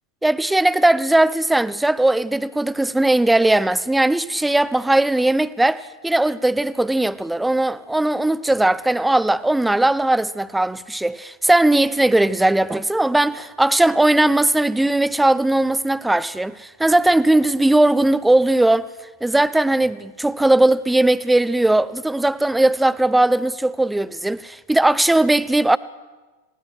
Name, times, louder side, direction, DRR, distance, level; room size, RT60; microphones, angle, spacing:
voice 1, 0.2-18.9 19.2-25.8, right 1 dB, 5° right, 0.7 m, -18 dB
29.5 x 18.0 x 6.5 m
figure-of-eight pair, 90°, 0 cm